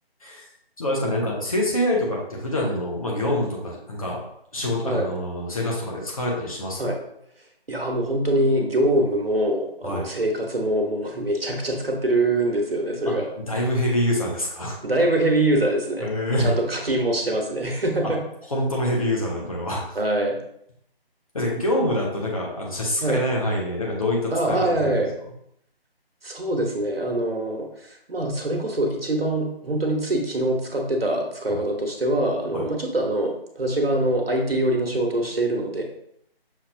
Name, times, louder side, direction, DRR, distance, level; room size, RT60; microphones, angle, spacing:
voice 1, 0.8-4.2 4.5-6.9 9.8-10.1 13.1-13.2 13.5-14.8 16.0-16.5 18.5-19.9 21.3-24.9 31.5-31.6 32.5-32.6, left 1 dB, 35° left, -3 dB, 1.1 m, -25 dB
voice 2, 7.7-13.3 14.8-16.1 16.4-18.2 19.9-20.4 23.0-23.2 24.3-25.1 26.2-35.8, right 1 dB, 70° right, 1 dB, 1.1 m, -24 dB
6.2 x 2.8 x 2.7 m, 0.73 s
figure-of-eight pair, 160°, 30 cm